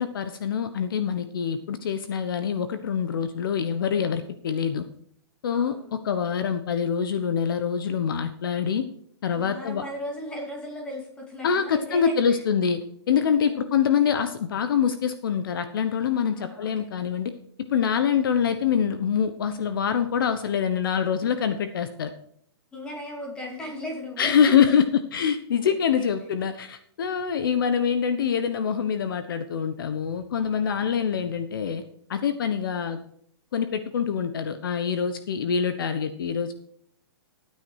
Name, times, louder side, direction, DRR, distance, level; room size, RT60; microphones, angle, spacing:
voice 1, 0.0-4.8 5.4-5.7 6.0-8.8 9.2-9.8 11.4-12.8 13.1-17.3 17.7-22.1 24.2-24.8 25.1-31.8 32.1-33.0 33.5-36.5, left 7 dB, 55° left, 10 dB, 1.1 m, -25 dB
voice 2, 5.5-5.9 9.4-12.4 13.2-13.6 16.3-16.9 18.0-18.2 22.7-24.3 25.6-26.1 30.4-30.8, left 1 dB, 5° left, 0 dB, 2.7 m, -38 dB
13.0 x 9.4 x 4.7 m, 0.65 s
hypercardioid pair, 170°, 14 cm